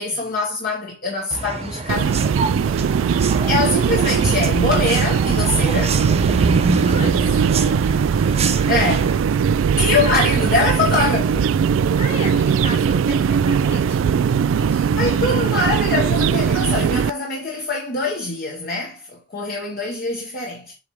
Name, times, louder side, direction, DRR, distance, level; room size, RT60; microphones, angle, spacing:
voice 1, 0.0-2.2 3.2-6.0 8.7-9.1 9.8-11.5 14.9-20.7, left 3 dB, 50° left, 1.4 m, -23 dB
sound 1, 1.3-9.1, right 2 dB, 30° right, 0.8 m, -26 dB
sound 2, 1.9-17.1, right 7 dB, 80° right, 0.3 m, -19 dB
voice 2, 6.8-7.4 10.0-10.5 12.0-14.9, left 3 dB, 30° left, 2.3 m, -34 dB
7.8 x 3.4 x 4.9 m
head